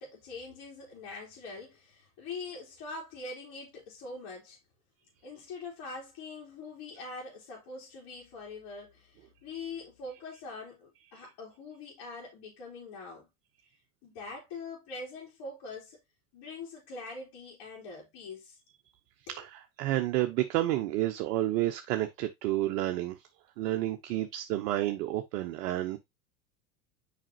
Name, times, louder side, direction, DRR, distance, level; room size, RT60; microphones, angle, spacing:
voice 1, 0.0-4.6 5.2-13.3 14.0-16.0 16.3-18.6 19.3-19.4, left 3 dB, 55° left, 3.5 m, -43 dB
voice 2, 19.3-23.2 23.6-26.0, right 14 dB, 65° right, 0.9 m, -30 dB
7.4 x 5.1 x 2.8 m
hypercardioid pair, 80°, 47 cm